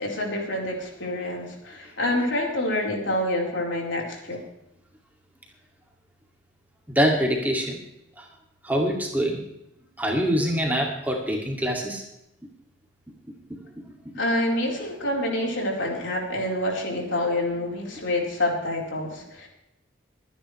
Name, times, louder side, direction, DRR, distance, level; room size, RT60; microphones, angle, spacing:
voice 1, 0.0-4.4 14.2-19.5, left 1 dB, 75° left, -1 dB, 4.3 m, -27 dB
voice 2, 6.9-7.8 8.2-8.3 8.6-9.5 10.0-12.0, equal, 10° right, 0 dB, 2.4 m, -24 dB
25.0 x 10.0 x 3.3 m, 0.84 s
head